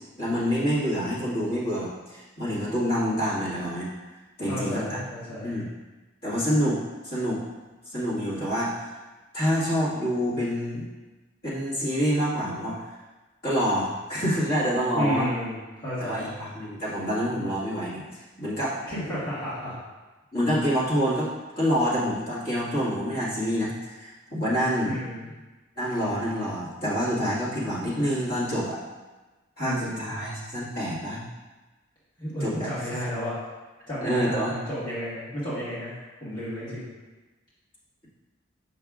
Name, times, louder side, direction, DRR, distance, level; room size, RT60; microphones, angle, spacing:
voice 1, 0.2-3.9 4.4-5.0 5.4-5.6 6.2-6.8 7.0-7.4 7.9-8.7 9.3-10.9 11.4-12.8 13.4-15.3 16.0-18.8 20.3-21.3 21.6-25.0 25.8-28.8 29.6-31.2 32.4-32.7 34.0-34.5, equal, 45° left, -9 dB, 1.9 m, -27 dB
voice 2, 4.5-5.5 14.9-16.3 18.8-19.8 24.8-25.2 29.6-30.1 32.2-33.4 33.9-35.9 36.2-36.9, equal, 20° left, -11 dB, 1.6 m, -32 dB
7.7 x 5.6 x 2.4 m, 1.2 s
head